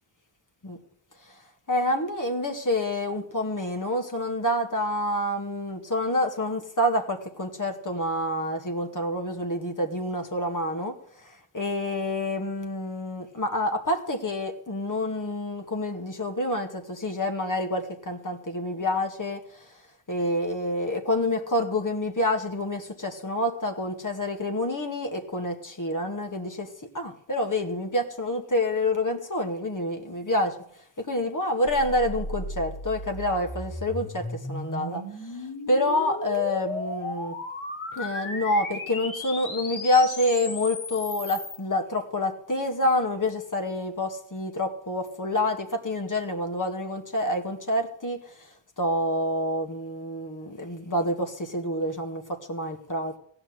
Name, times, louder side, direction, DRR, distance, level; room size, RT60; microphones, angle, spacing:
voice 1, 1.7-10.9 11.2-19.7 20.1-26.7 26.9-30.6 31.0-35.0 35.7-37.3 38.0-48.5 48.8-53.2, left 1 dB, 40° left, 4 dB, 2.3 m, -27 dB
sound 1, 31.6-41.6, left 1 dB, 70° left, 3.6 m, -35 dB
15.5 x 6.0 x 9.9 m, 0.66 s
cardioid pair, 50°, 49 cm